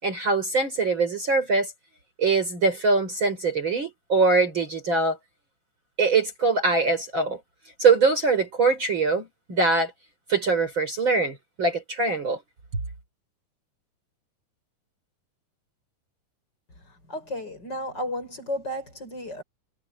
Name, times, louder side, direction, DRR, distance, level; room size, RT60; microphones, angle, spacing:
voice 1, 0.0-1.7 2.2-5.2 6.0-7.4 7.8-9.9 10.3-12.4, right 3 dB, 35° right, 4.6 m, -23 dB
voice 2, 17.1-19.4, left 1 dB, 30° left, 7.4 m, -33 dB
omnidirectional pair, 4.0 m